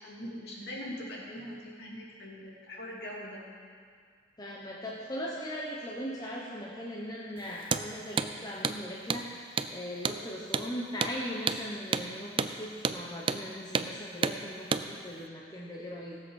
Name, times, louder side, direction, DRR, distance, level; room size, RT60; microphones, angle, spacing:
voice 1, 0.0-3.4, equal, 60° left, -4 dB, 2.8 m, -42 dB
voice 2, 4.4-16.2, equal, 20° left, -3 dB, 1.1 m, -39 dB
Hammer, 7.6-7.9 8.2-8.3 8.6-8.8 9.1-9.2 9.6-9.7 10.0-10.2 10.5-10.7 11.0-11.2 11.5-11.6 11.9-12.1 12.4-12.5 12.8-13.0 13.3-13.4 13.7-13.9 14.2-14.4 14.7-14.9, right 5 dB, 30° right, 0.4 m, -29 dB
17.0 x 7.8 x 6.5 m, 2.1 s
head